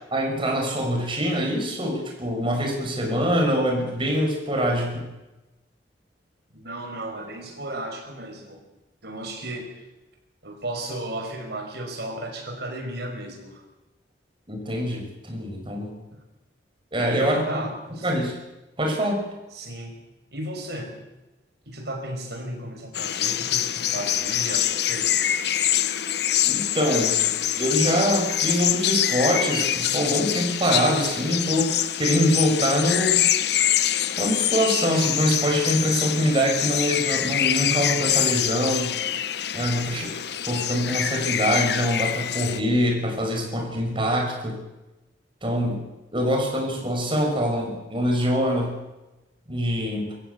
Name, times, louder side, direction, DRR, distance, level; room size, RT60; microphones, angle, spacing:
voice 1, 0.1-5.1 14.5-15.9 16.9-17.6 18.0-18.4 18.8-19.3 26.5-27.2 27.6-31.7 32.0-33.2 34.2-38.9 39.5-40.1 40.5-44.6 45.4-45.8 46.1-48.7 49.5-50.1, equal, 30° right, 2 dB, 5.8 m, -24 dB
voice 2, 6.5-8.6 9.0-9.8 10.4-13.6 16.1-16.2 17.0-18.1 19.5-20.0 20.3-20.9 21.7-25.1, right 1 dB, 60° right, 3 dB, 5.7 m, -34 dB
sound 1, 22.9-42.6, left 11 dB, 60° left, 0.8 m, -25 dB
24.0 x 14.5 x 8.4 m, 1.0 s
head